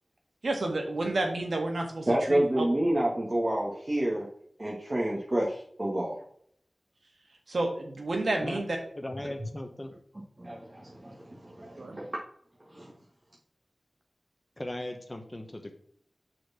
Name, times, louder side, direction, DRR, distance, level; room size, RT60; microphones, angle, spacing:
voice 1, 0.4-2.6 7.5-8.8 11.8-12.0, right 2 dB, 85° right, 3 dB, 1.7 m, -30 dB
voice 2, 2.1-4.3 4.6-6.1 10.4-12.1 12.7-12.9, right 1 dB, 35° right, -4 dB, 1.7 m, -29 dB
voice 3, 9.0-9.9 14.6-15.7, left 1 dB, 30° left, 4 dB, 1.0 m, -38 dB
6.4 x 4.3 x 5.7 m, 0.65 s
wide cardioid pair, 60°, 0 cm